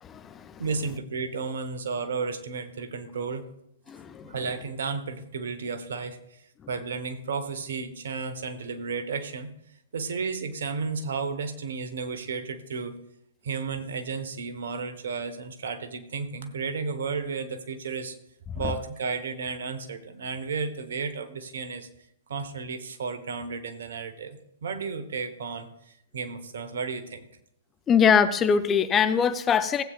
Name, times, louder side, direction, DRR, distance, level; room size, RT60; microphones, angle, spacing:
voice 1, 0.0-0.6 3.9-4.3 27.9-29.8, left 7 dB, 20° left, 11 dB, 0.6 m, -23 dB
voice 2, 0.6-3.4 4.2-9.5 9.9-12.9 13.4-18.1 18.5-21.9 22.3-27.3, right 5 dB, 65° right, 10 dB, 1.1 m, -33 dB
16.0 x 8.3 x 2.4 m, 0.79 s
figure-of-eight pair, 115°, 0 cm